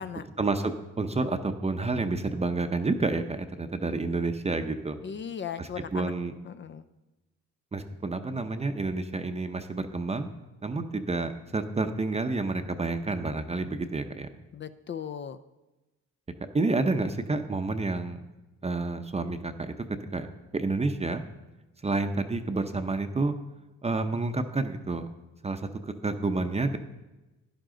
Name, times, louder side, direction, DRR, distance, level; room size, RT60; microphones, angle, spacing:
voice 1, 0.4-5.0 5.6-6.3 7.7-10.3 10.6-14.3 16.5-18.2 18.6-19.7 20.1-20.3 20.5-21.2 21.8-23.3 23.8-25.1 25.4-26.8, right 3 dB, 20° right, 7 dB, 0.7 m, -29 dB
voice 2, 5.0-6.1 6.4-6.9 14.5-15.4, left 7 dB, 40° left, 10 dB, 0.5 m, -37 dB
11.5 x 10.5 x 3.8 m, 1.1 s
cardioid pair, 90°, 30 cm